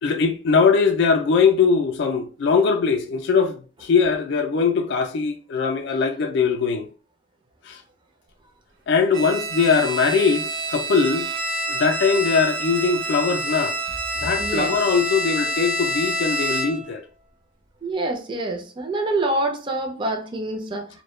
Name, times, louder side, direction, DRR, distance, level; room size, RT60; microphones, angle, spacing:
voice 1, 0.0-6.9 7.6-7.8 8.9-11.3 11.7-13.8 14.2-17.0, left 5 dB, 65° left, 0.3 m, -21 dB
Bowed string instrument, 9.1-17.0, right 1 dB, 65° right, 0.9 m, -27 dB
voice 2, 14.4-14.8 17.8-20.9, right 2 dB, 25° right, 0.4 m, -26 dB
2.2 x 2.1 x 3.0 m
head